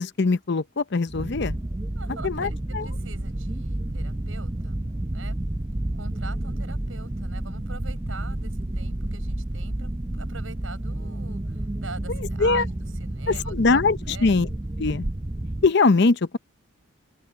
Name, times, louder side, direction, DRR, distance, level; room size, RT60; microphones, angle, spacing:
voice 1, 0.0-1.6 2.2-2.9 12.4-12.6 13.5-14.5 14.8-15.1 15.6-16.4, left 3 dB, 55° left, 0.7 m, -21 dB
sound 1, 1.1-15.7, right 1 dB, 20° right, 0.6 m, -30 dB
voice 2, 1.9-4.8 5.1-5.4 6.0-14.4, right 3 dB, 75° right, 7.6 m, -43 dB
open air
head